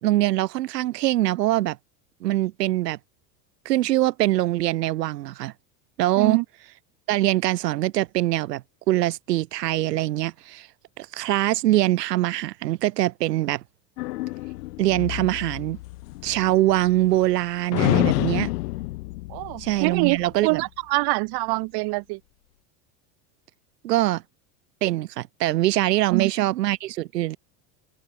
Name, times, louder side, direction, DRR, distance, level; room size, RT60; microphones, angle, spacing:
voice 1, 0.0-1.8 2.2-3.0 3.6-5.5 6.0-6.4 7.1-10.7 11.0-13.6 14.8-15.8 16.2-18.5 19.6-20.6 23.8-24.2 24.8-27.4, right 15 dB, 80° right, 1.3 m, -23 dB
sound 1, 14.0-17.4 17.7-20.4, left 20 dB, 70° left, 2.2 m, -29 dB
voice 2, 19.3-22.2 26.1-26.3, right 27 dB, 50° right, 0.9 m, -25 dB
open air
hypercardioid pair, 85°, 48 cm